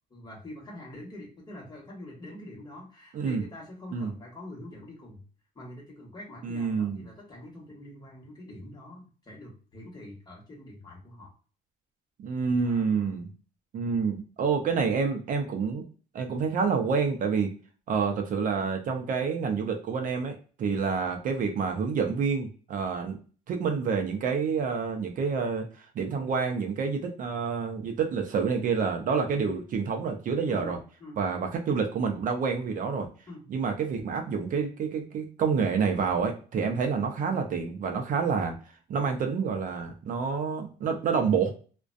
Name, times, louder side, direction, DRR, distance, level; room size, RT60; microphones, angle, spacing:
voice 1, 0.1-5.2 5.5-11.3 12.6-13.1 30.5-31.2 33.3-33.4 36.5-36.7, left 1 dB, 25° left, -2 dB, 1.2 m, -45 dB
voice 2, 3.1-3.4 3.9-4.1 6.4-7.1 12.2-13.3 13.7-15.8 16.1-17.5 17.9-23.2 23.5-30.8 31.2-33.1 33.5-38.5 38.9-41.5, right 5 dB, 50° right, 4 dB, 0.5 m, -28 dB
2.4 x 2.2 x 2.5 m, 0.39 s
cardioid pair, 110°, 17 cm